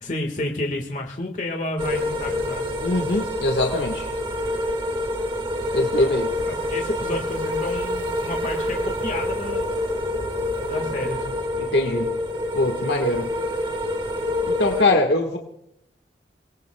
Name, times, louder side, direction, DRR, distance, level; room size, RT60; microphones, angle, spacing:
voice 1, 0.0-2.7 5.6-9.7 10.6-11.3, left 1 dB, 45° left, 2 dB, 1.6 m, -31 dB
sound 1, 1.8-14.8, left 1 dB, 30° right, 1.5 m, -27 dB
voice 2, 2.8-4.1 5.7-6.3 11.6-12.2 12.6-13.3 14.5-15.4, left 2 dB, 80° left, 2 dB, 1.5 m, -22 dB
29.0 x 19.0 x 2.3 m, 0.77 s
head